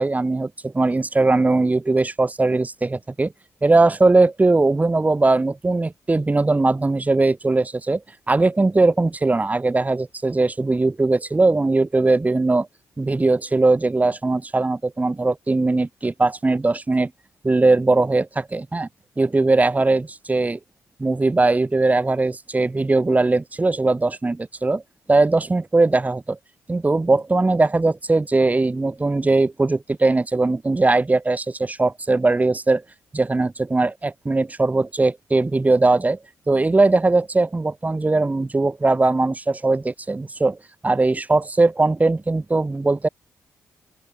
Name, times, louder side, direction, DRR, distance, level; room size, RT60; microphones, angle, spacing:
voice 1, 0.0-3.3 3.6-8.0 8.3-12.7 13.0-17.1 17.4-18.9 19.2-20.6 21.0-24.8 25.1-26.4 26.7-32.8 33.1-36.2 36.5-40.6 40.8-43.1, right 3 dB, 25° right, 2.6 m, -20 dB
open air
supercardioid pair, 60°, 6 cm